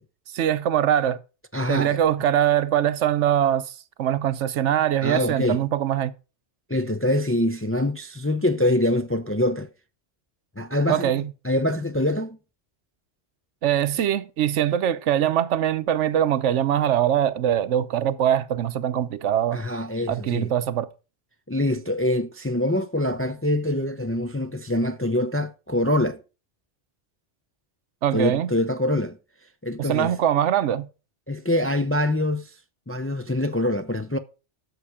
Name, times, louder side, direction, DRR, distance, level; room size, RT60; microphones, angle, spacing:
voice 1, 0.3-1.2 1.7-3.7 4.0-6.1 10.9-11.3 13.6-19.6 20.1-20.9 28.0-28.5 29.8-30.9, right 10 dB, 80° right, 1.0 m, -22 dB
voice 2, 1.5-2.0 5.0-5.6 6.7-9.7 10.6-11.1 11.4-12.4 19.5-20.5 21.5-26.2 28.1-29.2 29.6-30.1 31.3-32.5 32.9-34.2, left 1 dB, 15° left, 0.5 m, -24 dB
13.0 x 6.7 x 4.9 m
omnidirectional pair, 1.2 m